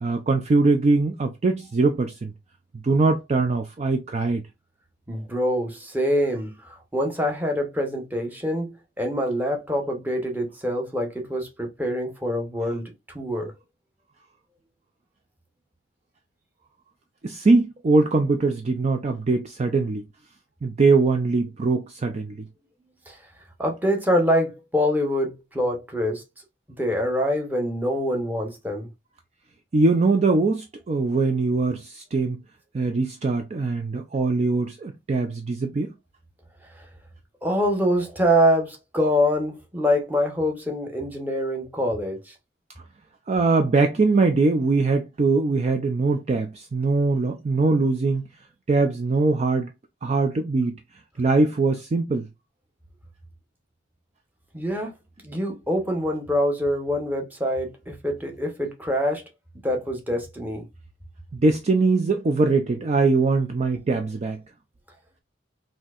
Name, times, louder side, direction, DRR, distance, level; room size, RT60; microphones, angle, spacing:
voice 1, 0.0-2.3 2.8-4.4 17.2-20.0 20.6-22.5 29.7-32.4 32.7-35.9 43.3-48.3 48.7-49.7 50.0-50.8 51.2-52.3 61.3-64.4, right 3 dB, 35° right, 0.4 m, -22 dB
voice 2, 5.1-13.5 23.1-23.2 23.6-26.2 26.8-28.9 37.4-42.3 54.5-54.9 55.2-59.3 59.5-60.6, equal, 10° right, 0.8 m, -25 dB
4.2 x 2.7 x 2.4 m
head